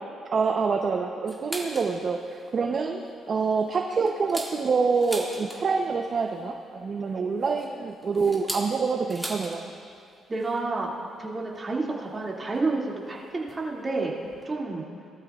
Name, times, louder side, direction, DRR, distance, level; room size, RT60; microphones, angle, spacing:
voice 1, 0.3-9.7, right 4 dB, 45° right, 3 dB, 0.7 m, -26 dB
sound 1, 1.3-1.9 2.4-2.5 2.9-3.1 3.6-5.9 7.1-9.6 9.9-10.0 10.3-10.6 11.5-11.6 12.5-12.6 13.5-13.6 14.0-14.1 14.2-14.4, right 1 dB, 5° right, 2.1 m, -38 dB
voice 2, 10.3-10.9 11.2-14.2 14.4-14.9, right 3 dB, 30° right, -3 dB, 2.3 m, -29 dB
20.0 x 13.0 x 2.4 m, 2.4 s
cardioid pair, 90°, 0 cm